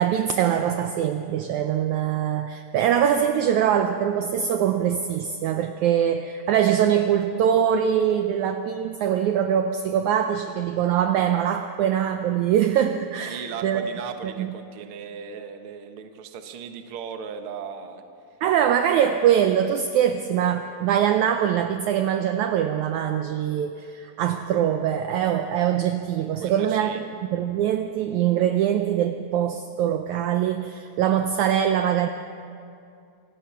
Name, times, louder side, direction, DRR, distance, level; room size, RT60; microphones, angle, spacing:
voice 1, 0.0-13.9 14.4-14.5 18.4-26.9 27.3-32.1, right 9 dB, 75° right, 7 dB, 1.8 m, -23 dB
voice 2, 13.2-18.0 18.6-18.7 26.4-27.0, right 6 dB, 60° right, 6 dB, 1.5 m, -37 dB
26.0 x 17.0 x 5.8 m, 2.5 s
omnidirectional pair, 4.0 m